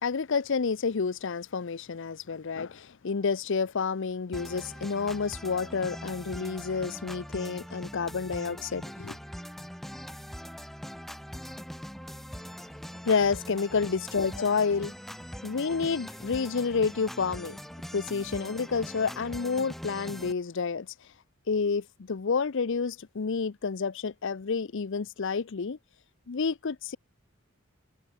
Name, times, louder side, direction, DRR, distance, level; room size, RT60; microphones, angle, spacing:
voice 1, 0.0-9.2 13.0-14.9 15.4-17.6 17.9-20.9 21.5-25.8 26.3-27.0, left 5 dB, 65° left, 0.6 m, -29 dB
sound 1, 4.3-20.3, equal, ahead, 2.0 m, -42 dB
head